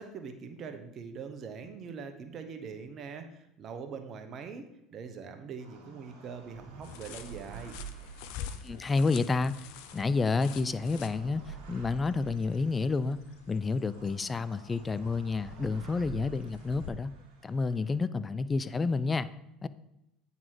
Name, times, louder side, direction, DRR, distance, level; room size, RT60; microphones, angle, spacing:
voice 1, 0.0-4.6 4.9-7.8, right 5 dB, 45° right, 7 dB, 1.0 m, -42 dB
sound 1, 5.6-18.0, right 6 dB, 65° right, 1.7 m, -49 dB
sound 2, 6.8-16.9, left 8 dB, 70° left, 0.6 m, -48 dB
voice 2, 8.6-9.7 9.9-13.2 13.5-17.1 17.4-19.3 19.6-19.7, left 4 dB, 25° left, 15 dB, 0.4 m, -29 dB
8.8 x 4.1 x 4.7 m, 0.86 s
hypercardioid pair, 85°, 0 cm